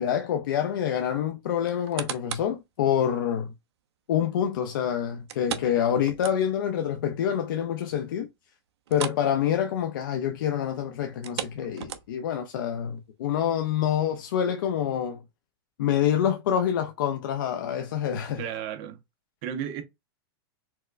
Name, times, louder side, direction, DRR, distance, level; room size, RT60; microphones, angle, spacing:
voice 1, 0.0-3.5 4.1-8.3 8.9-15.2 15.8-18.5, left 9 dB, 55° left, 0.4 m, -27 dB
sound 1, 1.7-2.6 3.1-3.2 5.3-6.8 7.1-7.2 7.6-7.7 8.9-9.3 9.6-9.8 11.1-12.4 13.0-13.1, right 10 dB, 85° right, 0.5 m, -36 dB
voice 2, 18.4-19.0 19.4-19.8, right 9 dB, 25° right, 0.4 m, -33 dB
4.3 x 2.0 x 2.4 m
supercardioid pair, 180°, 13 cm